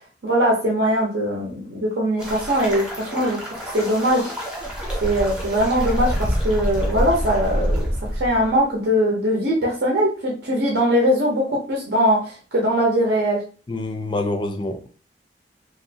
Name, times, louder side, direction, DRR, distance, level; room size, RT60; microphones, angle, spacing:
voice 1, 0.2-3.4 3.7-4.3 5.0-11.4 11.7-13.4, equal, 70° right, 0.8 m, -21 dB
sound 1, 2.2-8.6, equal, 5° right, 0.8 m, -26 dB
voice 2, 13.7-14.9, left 2 dB, 25° left, 0.3 m, -26 dB
3.0 x 2.5 x 2.7 m
head